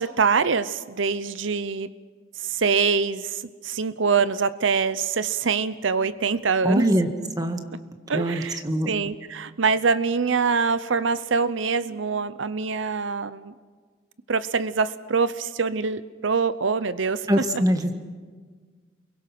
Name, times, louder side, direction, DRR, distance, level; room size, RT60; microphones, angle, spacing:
voice 1, 0.0-1.9 2.4-6.9 8.1-13.5 14.3-17.3, right 5 dB, 90° right, 14 dB, 0.7 m, -24 dB
voice 2, 6.6-7.1 7.4-7.6 8.1-8.9 17.3-17.9, equal, 20° right, 6 dB, 1.7 m, -22 dB
29.5 x 22.5 x 6.0 m, 1.5 s
head